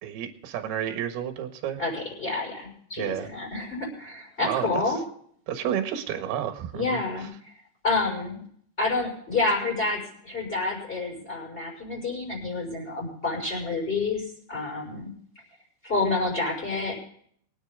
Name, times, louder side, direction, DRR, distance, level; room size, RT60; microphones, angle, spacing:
voice 1, 0.0-1.8 3.0-3.3 4.4-4.7 5.5-7.0, right 10 dB, 65° right, 6 dB, 3.2 m, -30 dB
voice 2, 1.8-5.0 6.7-7.3 7.8-8.4 8.8-15.1 15.8-17.0, left 3 dB, 10° left, -1 dB, 5.8 m, -29 dB
24.0 x 9.6 x 3.7 m, 0.62 s
omnidirectional pair, 5.3 m